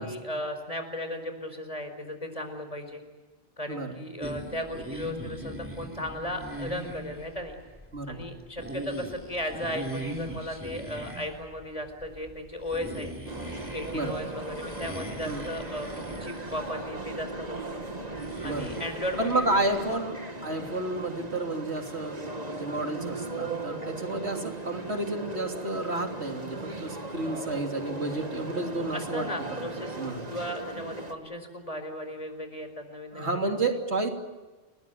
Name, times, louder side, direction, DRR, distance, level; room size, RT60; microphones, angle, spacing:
voice 1, 0.0-3.0 3.6-7.6 8.1-13.1 13.7-15.9 16.2-17.8 18.4-19.5 28.9-30.0 30.3-33.4, left 1 dB, 30° left, 7 dB, 5.0 m, -36 dB
sound 1, 4.2-20.0, right 1 dB, 10° right, 3.3 m, -41 dB
voice 2, 7.9-8.3 13.9-14.2 15.2-15.5 18.4-18.7 19.2-22.2 22.5-29.3 29.6-29.7 30.0-30.2 33.1-34.1, right 2 dB, 80° right, 3 dB, 3.5 m, -31 dB
sound 2, 13.3-31.1, right 2 dB, 35° right, 2.0 m, -38 dB
30.0 x 20.5 x 9.4 m, 1.2 s
omnidirectional pair, 1.1 m